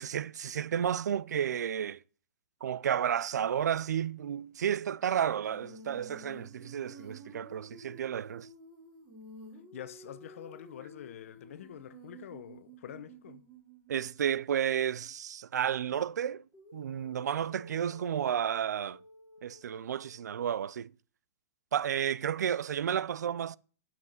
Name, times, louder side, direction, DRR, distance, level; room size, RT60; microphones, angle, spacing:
voice 1, 0.0-2.0 2.6-8.5 13.9-16.4 16.7-19.0 19.4-20.9 21.7-23.6, right 9 dB, 85° right, 0.5 m, -32 dB
Female singing, 5.4-14.3 16.5-20.7, equal, 15° right, 3.6 m, -52 dB
voice 2, 9.7-13.4, left 10 dB, 55° left, 1.0 m, -46 dB
9.4 x 5.9 x 7.3 m
hypercardioid pair, 165°, 9 cm